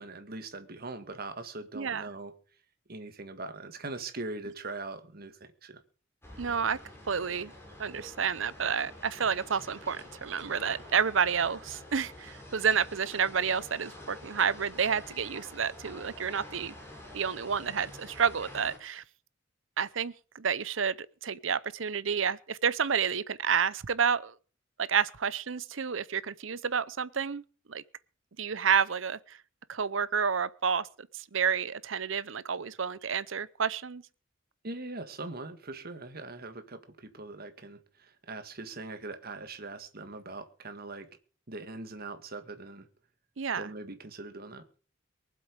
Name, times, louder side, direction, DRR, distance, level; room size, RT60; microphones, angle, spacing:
voice 1, 0.0-2.3 2.9-5.8 34.6-41.1 41.5-42.9 43.5-44.6, right 3 dB, 50° right, 1.8 m, -41 dB
voice 2, 1.7-2.1 6.4-6.8 7.1-7.5 7.8-16.7 17.1-19.0 19.8-21.0 21.2-24.3 24.8-27.4 27.7-27.8 28.4-29.4 29.7-30.9 31.1-34.0 43.4-43.7, right 6 dB, 70° right, 0.7 m, -30 dB
sound 1, 6.2-18.8, left 1 dB, 10° left, 4.1 m, -48 dB
23.0 x 7.7 x 5.2 m
head